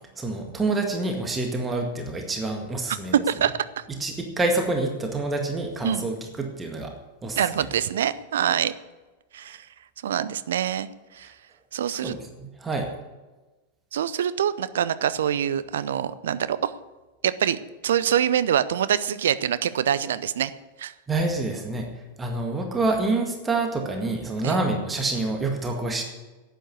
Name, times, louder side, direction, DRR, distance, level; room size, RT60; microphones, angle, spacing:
voice 1, 0.2-3.1 4.0-6.9 7.2-7.7 11.9-12.9 21.1-21.9 22.2-26.0, right 2 dB, 15° right, 3 dB, 1.9 m, -27 dB
voice 2, 3.1-3.6 5.8-6.1 7.4-8.7 9.3-9.7 10.0-11.3 11.7-12.2 13.9-16.8 17.2-20.5 20.8-20.9 24.4-24.6, right 9 dB, 60° right, 16 dB, 0.6 m, -25 dB
11.0 x 9.1 x 8.2 m, 1.2 s
figure-of-eight pair, 90°, 0 cm